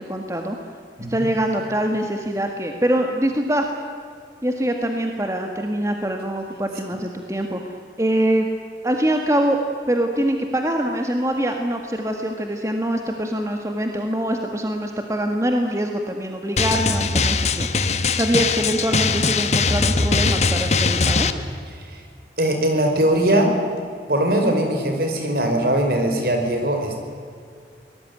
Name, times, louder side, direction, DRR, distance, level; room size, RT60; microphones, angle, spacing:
voice 1, 0.1-0.6 1.1-3.7 4.4-7.6 8.0-8.5 8.8-9.6 9.9-17.7 18.1-21.3, right 1 dB, 15° right, 3 dB, 1.6 m, -24 dB
Drum, 16.6-21.3, left 4 dB, 40° left, 1.1 m, -21 dB
voice 2, 22.4-23.5 24.1-27.0, right 1 dB, 55° right, 4 dB, 5.1 m, -20 dB
24.5 x 19.5 x 9.6 m, 2.3 s
head